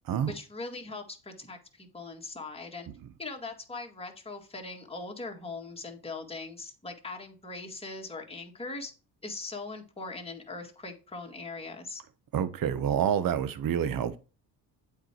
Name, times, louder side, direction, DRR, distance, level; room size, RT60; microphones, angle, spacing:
voice 1, 0.3-2.9 3.2-8.9 9.2-12.0, left 3 dB, 15° left, 2.0 m, -40 dB
voice 2, 12.3-14.2, right 9 dB, 55° right, 1.0 m, -27 dB
7.9 x 4.8 x 4.4 m
cardioid pair, 90°, 41 cm